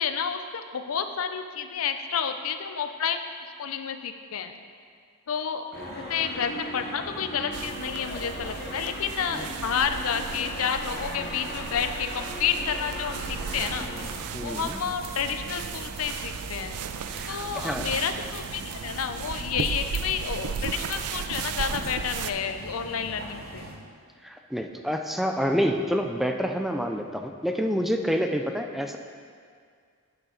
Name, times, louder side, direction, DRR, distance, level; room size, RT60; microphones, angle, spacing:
voice 1, 0.0-4.6 5.3-13.9 14.3-16.8 17.3-23.7, left 7 dB, 65° left, 8 dB, 0.5 m, -30 dB
sound 1, 5.7-14.1, left 1 dB, 45° left, 1.3 m, -38 dB
sound 2, 7.5-22.3, right 7 dB, 85° right, 0.4 m, -36 dB
sound 3, 13.1-23.8, right 2 dB, 45° right, 0.9 m, -41 dB
voice 2, 14.3-14.8 17.1-17.9 19.6-19.7 24.2-29.0, equal, ahead, 4 dB, 0.3 m, -28 dB
10.0 x 6.8 x 3.9 m, 2.1 s
head